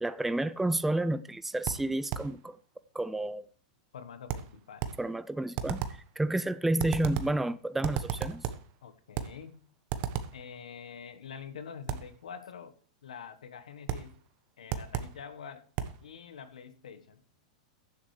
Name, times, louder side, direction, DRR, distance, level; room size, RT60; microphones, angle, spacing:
voice 1, 0.0-2.6 2.9-3.5 5.0-8.4, right 1 dB, 5° right, 0.4 m, -30 dB
sound 1, 1.7-2.4 4.3-5.1 5.6-6.1 6.8-7.4 7.8-8.7 9.1-9.4 9.9-10.4 11.9-12.2 13.9-14.2 14.7-15.2 15.8-16.0, right 9 dB, 50° right, 1.0 m, -34 dB
voice 2, 3.9-4.9 8.8-9.6 10.3-12.8 13.0-14.1 14.6-15.6 16.0-17.2, left 7 dB, 85° left, 1.2 m, -46 dB
17.5 x 7.4 x 3.2 m
hypercardioid pair, 115°, 4 cm